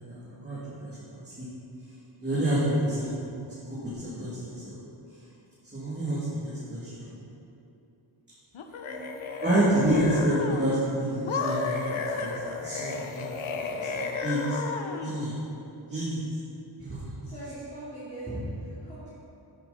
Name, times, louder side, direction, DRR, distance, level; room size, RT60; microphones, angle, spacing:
voice 1, 0.0-1.5 2.2-3.1 3.8-4.7 5.1-5.2 5.7-7.1 9.4-11.9 12.2-13.2 13.5-14.6 15.0-15.4 15.9-16.3 16.8-17.1, right 1 dB, 20° right, -11 dB, 3.1 m, -28 dB
sound 1, 8.5-10.8 11.3-15.2, left 4 dB, 75° left, 1.0 m, -33 dB
voice 2, 8.8-9.2 17.2-19.2, right 1 dB, 15° left, -13 dB, 3.2 m, -39 dB
14.5 x 9.6 x 4.4 m, 2.8 s
wide cardioid pair, 155°, 49 cm